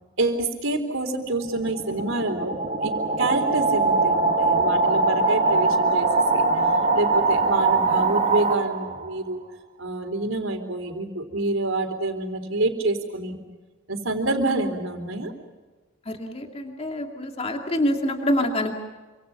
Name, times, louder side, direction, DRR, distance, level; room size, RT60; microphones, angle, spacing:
voice 1, 0.2-6.5 6.9-9.4 9.8-13.4 13.9-15.3, right 2 dB, 75° right, 5 dB, 4.0 m, -27 dB
sound 1, 1.3-9.1, right 3 dB, 30° right, 1.7 m, -22 dB
voice 2, 16.1-18.7, left 1 dB, 30° left, 3 dB, 2.4 m, -26 dB
28.0 x 26.0 x 5.8 m, 1.3 s
head